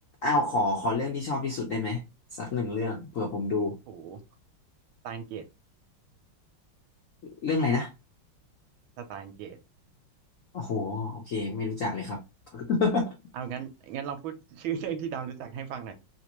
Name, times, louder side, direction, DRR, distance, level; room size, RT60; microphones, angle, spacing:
voice 1, 0.2-2.0 2.4-3.8 7.4-7.9 10.5-12.2 12.5-13.1, left 3 dB, 70° left, 0.7 m, -28 dB
voice 2, 3.9-4.2 5.0-5.5 9.0-9.6 13.3-15.9, right 8 dB, 75° right, 1.4 m, -36 dB
3.4 x 2.5 x 2.9 m
omnidirectional pair, 2.3 m